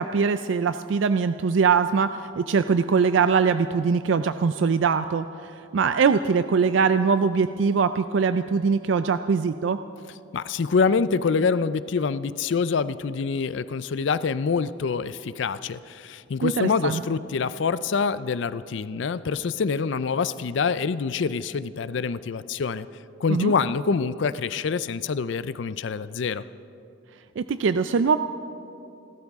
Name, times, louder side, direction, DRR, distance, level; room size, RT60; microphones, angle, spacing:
voice 1, 0.0-9.8 16.4-17.0 23.3-23.5 27.4-28.2, right 5 dB, 70° right, 11 dB, 0.4 m, -22 dB
voice 2, 10.3-22.9 23.2-26.4, left 5 dB, 65° left, 15 dB, 0.4 m, -26 dB
30.0 x 13.0 x 3.6 m, 2.7 s
head